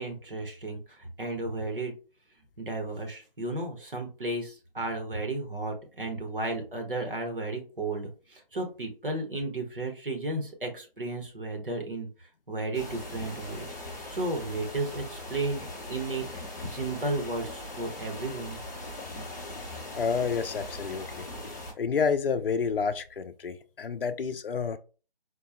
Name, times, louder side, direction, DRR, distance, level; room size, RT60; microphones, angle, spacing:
voice 1, 0.0-1.9 2.6-12.1 12.5-13.6 14.1-16.2 16.7-18.6, right 2 dB, 60° right, 1.2 m, -33 dB
sound 1, 12.7-21.7, left 1 dB, 20° left, 0.8 m, -40 dB
voice 2, 19.9-21.3 21.8-24.8, left 5 dB, 65° left, 0.5 m, -29 dB
4.4 x 2.1 x 2.9 m
figure-of-eight pair, 165°, 30 cm